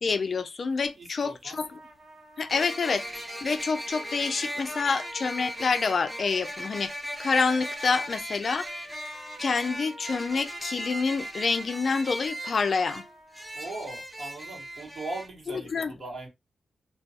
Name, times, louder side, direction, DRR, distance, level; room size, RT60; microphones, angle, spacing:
voice 1, 0.0-1.8 2.4-3.1 3.4-6.9 7.2-8.7 9.4-13.0 15.5-15.9, left 4 dB, 55° left, 0.3 m, -27 dB
sound 1, 0.9-1.0 2.5-15.3, equal, 10° right, 0.5 m, -38 dB
voice 2, 1.0-1.6 13.5-16.3, right 2 dB, 55° right, 1.1 m, -39 dB
Trumpet, 1.6-8.0 8.5-13.8, equal, 70° right, 1.2 m, -49 dB
2.2 x 2.2 x 2.7 m
cardioid pair, 90°, 0 cm